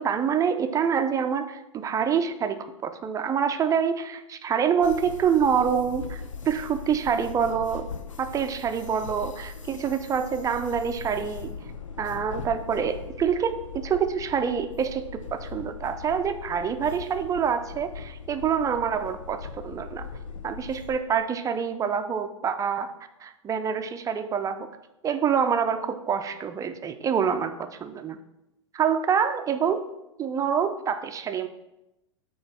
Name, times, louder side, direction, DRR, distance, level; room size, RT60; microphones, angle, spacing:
voice 1, 0.0-2.6 2.8-7.9 8.2-11.5 12.0-20.1 20.4-22.9 23.2-24.7 25.0-27.5 27.8-28.2 28.7-29.8 30.2-31.5, right 7 dB, 20° right, 8 dB, 0.6 m, -26 dB
sound 1, 4.8-21.0, left 6 dB, 85° left, 0.6 m, -40 dB
8.7 x 3.1 x 5.8 m, 0.91 s
figure-of-eight pair, 100°, 16 cm